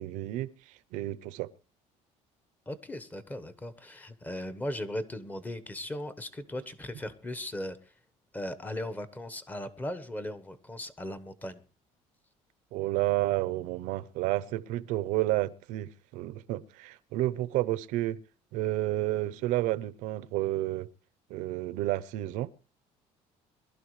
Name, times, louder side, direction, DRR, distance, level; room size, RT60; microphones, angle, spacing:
voice 1, 0.0-1.5 12.7-18.2 18.5-20.9 21.3-22.5, right 16 dB, 85° right, 0.8 m, -31 dB
voice 2, 2.7-7.8 8.3-11.6, left 1 dB, 15° left, 1.2 m, -38 dB
22.5 x 12.0 x 3.2 m
cardioid pair, 145°, 13 cm